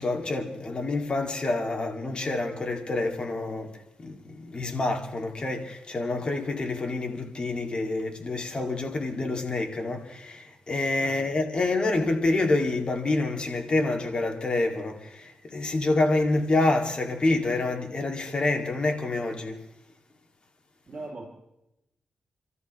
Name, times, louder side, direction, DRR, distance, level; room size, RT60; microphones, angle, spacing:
voice 1, 0.0-19.6, left 2 dB, 40° left, 2.4 m, -27 dB
voice 2, 11.0-11.3 20.9-21.3, right 2 dB, 40° right, 3.2 m, -40 dB
29.0 x 13.5 x 3.2 m
cardioid pair, 70°, 2 cm